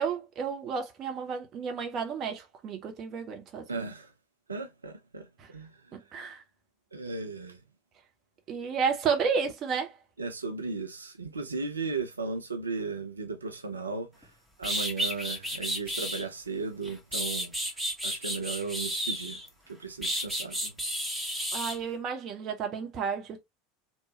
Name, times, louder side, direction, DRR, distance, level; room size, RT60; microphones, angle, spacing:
voice 1, 0.0-3.8 5.4-5.5 5.9-6.4 8.5-9.9 21.5-23.4, right 6 dB, 40° right, 0.9 m, -32 dB
voice 2, 3.7-4.1 4.5-5.7 6.9-7.6 10.2-14.3 14.6-17.5 18.0-19.4 19.7-20.7, right 4 dB, 85° right, 0.5 m, -36 dB
sound 1, 14.2-14.3 14.6-16.2 16.8-19.5 20.0-21.8, equal, 5° right, 1.1 m, -32 dB
3.0 x 2.1 x 2.8 m
figure-of-eight pair, 80°, 0 cm